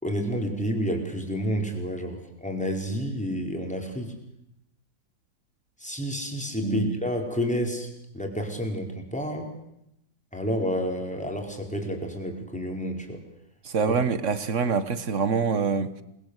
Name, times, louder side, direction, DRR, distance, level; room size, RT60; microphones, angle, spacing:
voice 1, 0.0-4.1 5.8-9.5 10.3-13.2, equal, 5° left, 4.7 m, -30 dB
voice 2, 6.6-7.0 13.6-15.9, right 5 dB, 40° right, 1.5 m, -25 dB
28.5 x 21.5 x 8.2 m
omnidirectional pair, 2.1 m